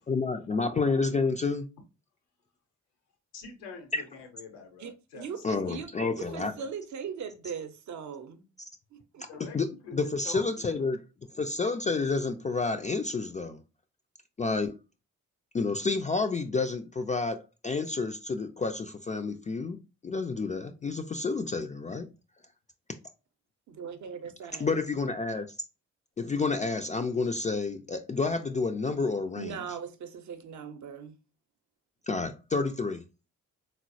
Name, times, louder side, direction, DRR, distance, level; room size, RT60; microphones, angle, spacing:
voice 1, 0.1-1.7 3.9-4.0 5.4-6.5 9.2-11.0 11.3-13.6 14.4-14.8 15.5-22.1 24.6-25.6 26.2-29.6 32.1-33.0, left 4 dB, 20° left, 0.3 m, -30 dB
voice 2, 3.3-5.6 5.9-6.7 9.3-10.6, left 4 dB, 90° left, 0.7 m, -46 dB
voice 3, 4.8-5.9 6.2-8.4 8.9-9.2 23.7-24.8 29.4-31.2, right 7 dB, 50° right, 0.6 m, -40 dB
3.8 x 2.0 x 2.5 m
hypercardioid pair, 45°, 36 cm